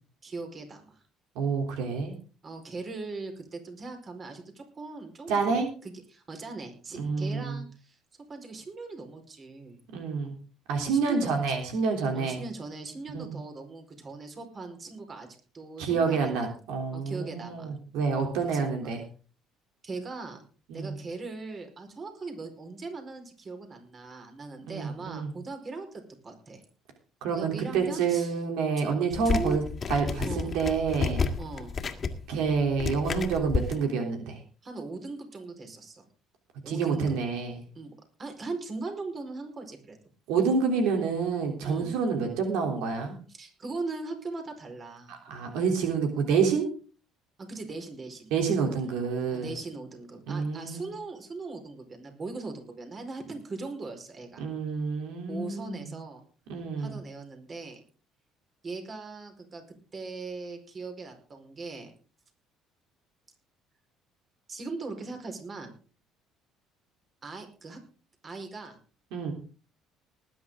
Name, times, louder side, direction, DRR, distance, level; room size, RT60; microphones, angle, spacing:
voice 1, 0.2-1.0 2.4-8.0 8.3-9.8 10.7-11.4 12.1-15.3 15.5-16.3 16.9-17.7 18.5-18.9 19.8-20.4 20.7-26.6 27.2-28.4 28.8-28.9 29.2-29.6 30.2-30.6 31.4-31.8 34.6-36.1 36.6-37.1 37.7-37.9 38.2-40.0 41.6-41.9 43.3-45.2 47.4-48.3 48.8-49.0 49.3-54.4 55.3-56.2 56.8-57.8 58.6-59.6 59.9-61.9 64.5-65.7 67.2-67.8 68.2-68.8, right 3 dB, 35° right, 5 dB, 4.8 m, -39 dB
voice 2, 1.3-2.1 5.3-5.7 6.9-7.6 9.9-10.3 10.7-12.4 13.1-13.4 15.8-19.0 20.7-20.9 24.7-25.3 27.2-29.6 29.9-31.2 32.3-34.4 36.7-37.6 40.3-43.2 45.1-46.7 48.3-49.5 50.3-50.9 54.4-55.9 56.5-57.0 69.1-69.3, right 5 dB, 80° right, 3 dB, 3.4 m, -28 dB
sound 1, 29.1-33.8, left 5 dB, 35° left, 2.0 m, -31 dB
19.5 x 10.0 x 3.8 m, 0.38 s
cardioid pair, 105°, 0 cm